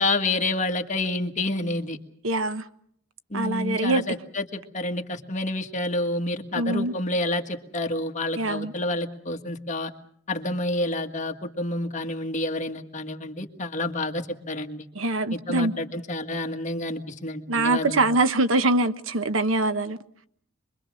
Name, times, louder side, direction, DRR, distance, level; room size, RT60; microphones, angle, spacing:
voice 1, 0.0-2.0 3.3-9.9 10.3-14.9 15.3-18.0, left 2 dB, 35° left, 1.7 m, -29 dB
voice 2, 2.2-2.6 3.3-4.0 6.5-6.9 8.4-8.7 14.9-15.7 17.5-20.0, right 2 dB, 80° right, 1.1 m, -23 dB
26.0 x 22.5 x 6.3 m
head